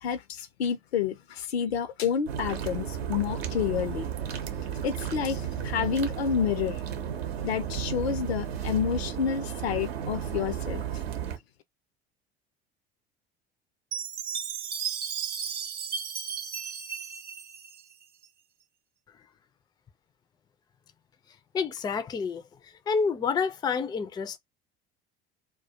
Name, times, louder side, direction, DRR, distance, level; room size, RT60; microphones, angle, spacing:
voice 1, 0.0-4.1 4.8-6.8 7.4-10.8, left 7 dB, 80° left, 0.6 m, -29 dB
sound 1, 2.3-11.4, right 8 dB, 75° right, 0.7 m, -33 dB
Chime, 13.9-18.2, right 7 dB, 30° right, 0.6 m, -34 dB
voice 2, 21.5-22.4 22.9-24.4, left 5 dB, 15° left, 0.3 m, -28 dB
2.3 x 2.2 x 2.7 m
figure-of-eight pair, 65°, 31 cm